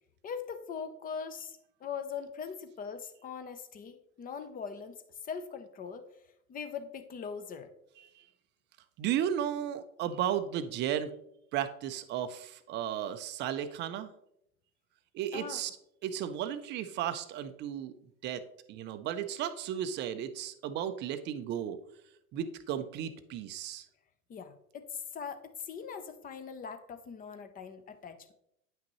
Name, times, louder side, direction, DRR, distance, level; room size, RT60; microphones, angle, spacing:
voice 1, 0.2-6.1 6.5-7.7 15.3-15.6 24.3-28.3, left 6 dB, 20° left, 9 dB, 0.6 m, -41 dB
voice 2, 9.0-11.1 11.5-14.1 15.1-15.7 16.0-17.9 18.2-18.4 18.7-21.8 22.3-23.8, right 10 dB, 25° right, 12 dB, 0.5 m, -34 dB
9.0 x 5.9 x 3.0 m, 0.77 s
hypercardioid pair, 95°, 44 cm